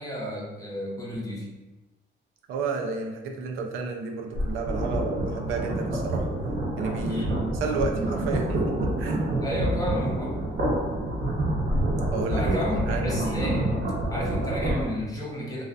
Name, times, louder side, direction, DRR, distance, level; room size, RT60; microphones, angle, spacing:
voice 1, 0.0-1.6 7.1-7.4 9.4-10.4 12.3-13.8 14.1-15.6, equal, 15° left, -3 dB, 0.7 m, -32 dB
voice 2, 2.5-6.3 6.8-7.3 7.6-9.2 12.1-12.4 12.9-13.5, right 4 dB, 90° right, 2 dB, 0.4 m, -31 dB
sound 1, 4.3-14.8, right 1 dB, 55° right, 0.7 m, -27 dB
2.4 x 2.4 x 2.3 m, 1.1 s
cardioid pair, 90°, 20 cm